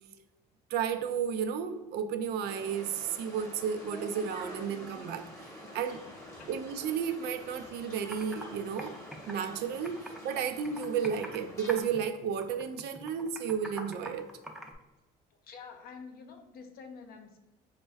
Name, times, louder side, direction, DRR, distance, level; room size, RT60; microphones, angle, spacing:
voice 1, 0.7-5.3 5.6-6.0 6.5-9.0 9.3-14.3, right 7 dB, 75° right, 0.4 m, -33 dB
sound 1, 2.4-11.8, equal, 15° left, 0.8 m, -47 dB
Computer keyboard, 7.8-7.9 8.1-8.4 8.8-10.3 10.6-11.4 11.7-12.1 12.4-14.7, right 1 dB, ahead, 0.5 m, -43 dB
voice 2, 15.3-17.4, left 5 dB, 60° left, 0.6 m, -48 dB
4.3 x 2.1 x 3.4 m
cardioid pair, 110°, 17 cm